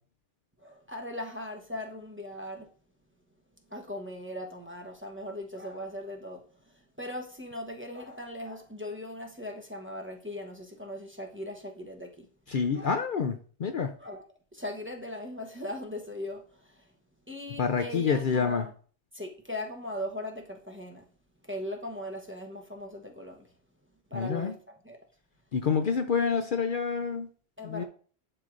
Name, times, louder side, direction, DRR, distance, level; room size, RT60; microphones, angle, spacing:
voice 1, 0.6-2.7 3.7-12.3 12.7-13.0 14.0-14.2 14.5-16.9 17.3-18.7 19.1-21.1 21.4-23.5 24.1-25.0 27.6-27.8, left 1 dB, 10° right, 0.9 m, -39 dB
voice 2, 12.5-13.9 17.6-18.7 24.1-24.5 25.5-27.3 27.6-27.8, left 6 dB, 55° left, 0.7 m, -28 dB
11.0 x 4.8 x 2.5 m
omnidirectional pair, 1.1 m